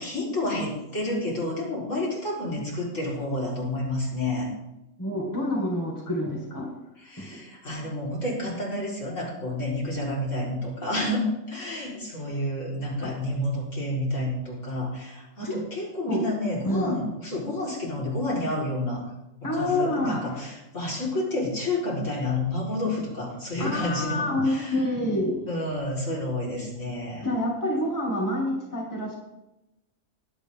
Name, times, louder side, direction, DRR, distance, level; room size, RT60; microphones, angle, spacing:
voice 1, 0.0-4.5 7.0-19.0 19.4-24.8 25.5-27.3, left 1 dB, 55° left, -5 dB, 4.6 m, -30 dB
voice 2, 5.0-6.7 7.2-7.3 13.0-13.1 15.4-15.6 16.1-16.3 16.6-16.9 19.4-20.3 23.6-25.4 27.2-29.2, left 1 dB, 10° left, -2 dB, 2.2 m, -27 dB
21.0 x 8.3 x 3.7 m, 0.94 s
omnidirectional pair, 1.5 m